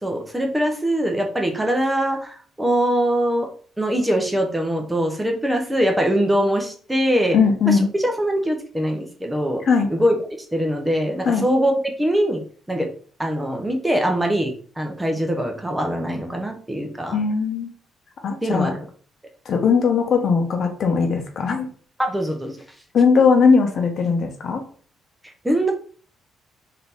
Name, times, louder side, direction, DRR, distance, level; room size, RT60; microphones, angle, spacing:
voice 1, 0.0-3.5 3.8-7.4 7.7-9.6 9.9-10.2 10.5-12.4 12.7-12.9 13.2-17.2 18.4-18.8 22.0-22.5 25.4-25.7, equal, 10° right, 3 dB, 0.9 m, -22 dB
voice 2, 7.3-7.9 9.7-9.9 11.2-11.4 17.1-17.7 18.2-18.7 19.5-21.7 22.9-24.6, left 5 dB, 55° left, 4 dB, 0.9 m, -19 dB
3.8 x 2.8 x 3.4 m, 0.43 s
cardioid pair, 90°, 0 cm